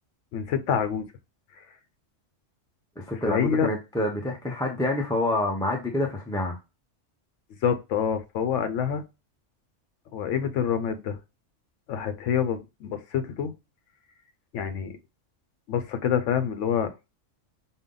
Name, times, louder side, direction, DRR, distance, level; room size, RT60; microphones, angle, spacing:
voice 1, 0.3-1.1 3.3-3.7 7.6-9.0 10.1-11.2 11.9-13.5 14.5-14.9 15.7-16.9, left 7 dB, 75° left, 0.9 m, -26 dB
voice 2, 3.0-6.6, left 1 dB, 5° left, 0.4 m, -27 dB
5.3 x 2.2 x 3.7 m
omnidirectional pair, 1.3 m